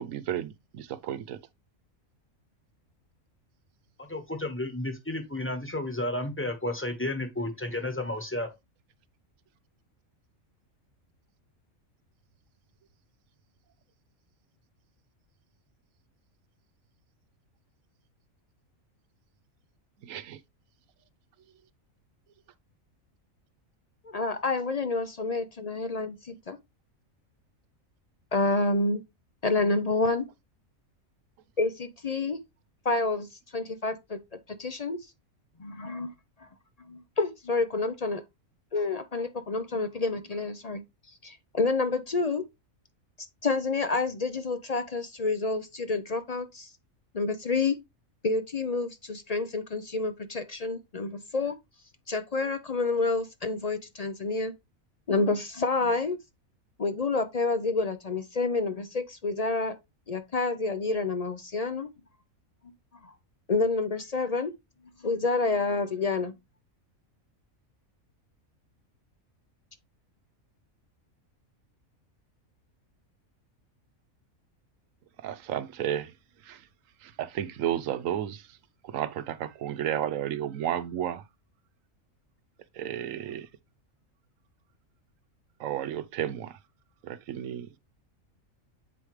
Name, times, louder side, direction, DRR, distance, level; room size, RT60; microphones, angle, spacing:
voice 1, 0.0-1.4 20.0-20.4 75.2-76.1 76.4-76.6 77.0-78.5 78.8-81.2 82.7-83.5 85.6-86.6 87.0-87.8, right 10 dB, 75° right, 1.0 m, -32 dB
voice 2, 4.1-8.5, left 1 dB, 10° left, 1.2 m, -32 dB
voice 3, 24.0-26.6 28.3-29.0 29.4-30.3 31.6-32.4 32.8-33.3 33.5-34.2 34.6-35.0 35.6-36.1 36.4-36.5 36.9-38.2 38.7-40.8 41.2-42.4 43.4-46.7 47.1-47.8 48.2-51.5 52.1-54.5 55.1-56.2 56.8-59.7 60.1-61.9 63.5-64.5 65.0-66.3, left 3 dB, 50° left, 0.5 m, -28 dB
7.8 x 4.9 x 3.1 m
omnidirectional pair, 1.4 m